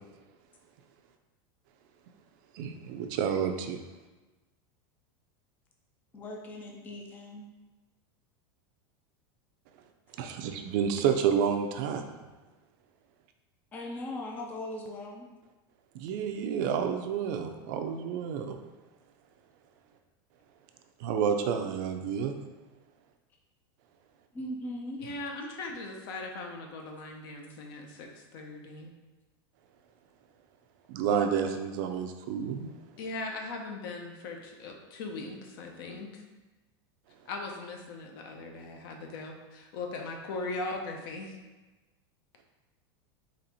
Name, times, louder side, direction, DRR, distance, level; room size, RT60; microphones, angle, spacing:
voice 1, 2.5-3.8 10.2-12.0 15.9-18.6 21.0-22.3 30.9-32.7, right 7 dB, 50° right, 6 dB, 0.4 m, -29 dB
voice 2, 6.1-7.5 13.7-15.3 24.3-25.0, left 1 dB, 15° left, 0 dB, 0.4 m, -39 dB
voice 3, 25.0-28.9 33.0-36.2 37.3-41.4, left 3 dB, 60° left, 3 dB, 0.7 m, -39 dB
4.1 x 2.9 x 4.2 m, 1.2 s
supercardioid pair, 165°, 13 cm